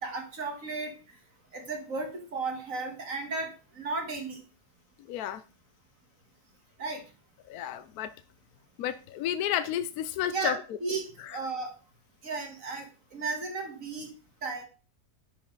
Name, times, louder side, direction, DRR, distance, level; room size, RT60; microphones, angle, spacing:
voice 1, 0.0-0.9 1.5-4.4 6.8-7.0 10.3-11.7 12.2-12.9 13.1-14.1 14.4-14.6, right 3 dB, 55° right, 3 dB, 2.0 m, -34 dB
voice 2, 5.1-5.4 7.5-8.1 8.8-10.5 11.3-11.4, left 11 dB, 70° left, 12 dB, 1.0 m, -31 dB
10.5 x 5.8 x 3.8 m, 0.35 s
omnidirectional pair, 1.8 m